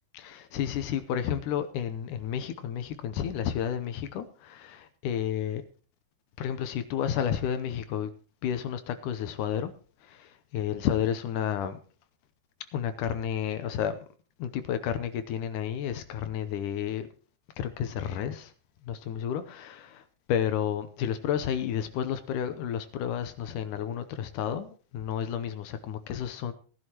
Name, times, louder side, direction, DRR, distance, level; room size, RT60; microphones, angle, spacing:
voice 1, 0.1-5.6 6.4-8.1 8.4-9.7 10.0-11.8 12.7-14.0 14.4-17.1 17.6-18.5 18.9-20.0 20.3-26.5, left 9 dB, 75° left, 2.0 m, -31 dB
19.0 x 11.0 x 2.9 m
omnidirectional pair, 4.2 m